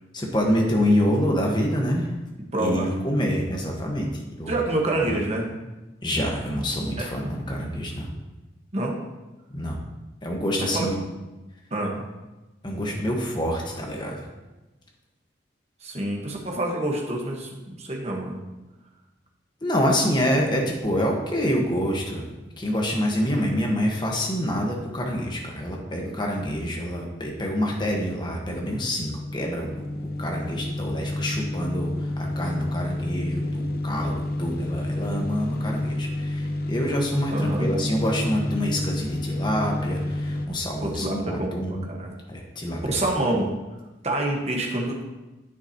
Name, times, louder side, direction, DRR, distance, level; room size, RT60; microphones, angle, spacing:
voice 1, 0.1-2.1 2.6-4.6 4.9-5.0 6.0-8.1 9.5-9.8 10.2-11.0 12.6-14.3 19.6-22.2 22.6-29.9 30.2-41.9 42.3-43.1, equal, 25° left, 0 dB, 1.3 m, -26 dB
voice 2, 2.5-2.9 4.5-5.7 7.0-7.1 8.7-9.0 10.6-10.9 11.7-12.0 15.8-17.5 17.8-18.4 37.3-37.7 40.8-42.2 42.8-43.5 44.0-45.0, right 1 dB, 35° right, 0 dB, 1.3 m, -27 dB
sound 1, 28.6-40.5, left 1 dB, 50° left, 0.8 m, -29 dB
9.8 x 8.1 x 2.9 m, 1.1 s
head